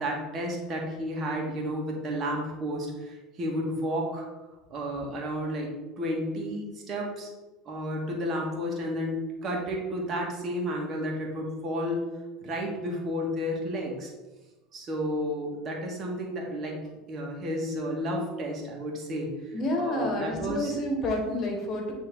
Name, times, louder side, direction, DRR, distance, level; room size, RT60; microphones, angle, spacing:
voice 1, 0.0-4.3 4.7-7.3 7.7-12.0 12.4-14.1 14.7-16.7 17.1-19.3 19.8-20.7, equal, 45° right, -1 dB, 1.9 m, -32 dB
voice 2, 19.5-21.9, left 1 dB, 45° left, 1 dB, 1.6 m, -29 dB
9.3 x 3.5 x 3.7 m, 1.1 s
supercardioid pair, 100°, 0 cm